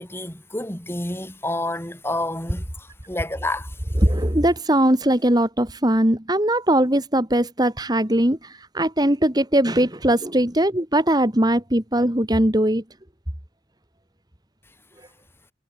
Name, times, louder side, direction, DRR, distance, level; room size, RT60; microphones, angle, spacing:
voice 1, 0.0-3.7, left 1 dB, 15° left, 7.7 m, -29 dB
voice 2, 4.0-12.8, right 1 dB, 20° right, 2.5 m, -20 dB
head